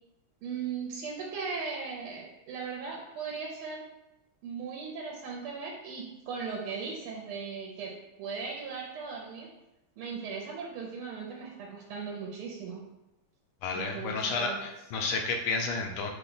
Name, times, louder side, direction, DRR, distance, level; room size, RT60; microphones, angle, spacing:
voice 1, 0.4-3.8 4.4-9.5 10.0-12.8 13.7-14.6, right 5 dB, 80° right, -1 dB, 1.5 m, -38 dB
voice 2, 13.6-16.1, left 4 dB, 80° left, 2 dB, 1.4 m, -31 dB
5.4 x 2.2 x 3.8 m, 0.95 s
omnidirectional pair, 2.4 m